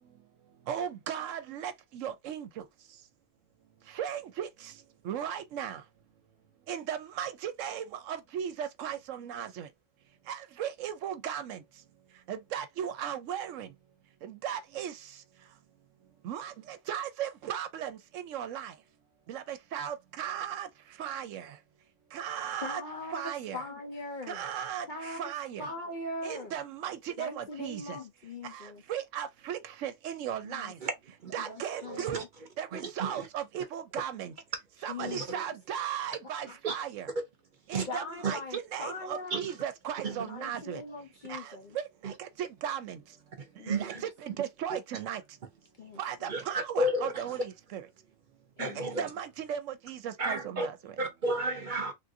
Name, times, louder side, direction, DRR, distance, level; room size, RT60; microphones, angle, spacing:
voice 1, 0.7-2.6 3.9-4.7 5.0-5.8 6.7-9.7 10.3-11.6 12.3-13.7 14.2-15.0 16.2-18.7 19.3-20.7 21.0-21.5 22.1-22.8 23.1-23.6 24.3-25.7 26.2-28.0 28.4-30.8 31.3-32.2 32.6-34.3 34.8-37.1 37.7-40.8 41.3-43.0 43.7-45.2 46.0-47.9 48.8-50.9, right 9 dB, 75° right, 1.0 m, -37 dB
voice 2, 22.6-24.4 24.9-25.3 25.6-26.5 27.2-28.8 30.4-30.7 31.4-32.3 34.9-35.4 36.5-36.6 37.9-39.5 40.0-41.8 43.6-43.8 45.8-46.3 48.6-49.1, left 2 dB, 50° left, 0.6 m, -41 dB
voice 3, 31.9-32.2 32.7-33.3 35.0-35.4 36.6-36.8 37.7-37.9 38.2-38.3 39.3-39.5 40.0-40.2 42.0-42.1 43.4-44.0 44.7-44.8 46.3-47.3 48.6-49.0 50.2-50.7 51.0-51.9, right 2 dB, 50° right, 0.7 m, -32 dB
3.4 x 2.4 x 2.6 m
omnidirectional pair, 1.3 m